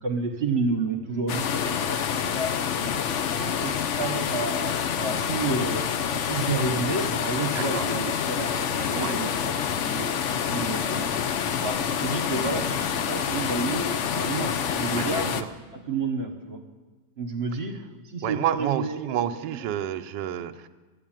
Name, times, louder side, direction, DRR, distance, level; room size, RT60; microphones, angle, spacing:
voice 1, 0.0-2.9 3.4-11.0 11.6-15.4 15.7-16.6 17.2-17.7 18.0-19.6, right 3 dB, 40° right, 3 dB, 1.4 m, -31 dB
sound 1, 1.3-15.4, left 8 dB, 65° left, 0.7 m, -27 dB
voice 2, 15.0-15.5 18.2-20.7, right 11 dB, 80° right, 8 dB, 1.3 m, -30 dB
12.5 x 8.7 x 8.9 m, 1.3 s
omnidirectional pair, 1.9 m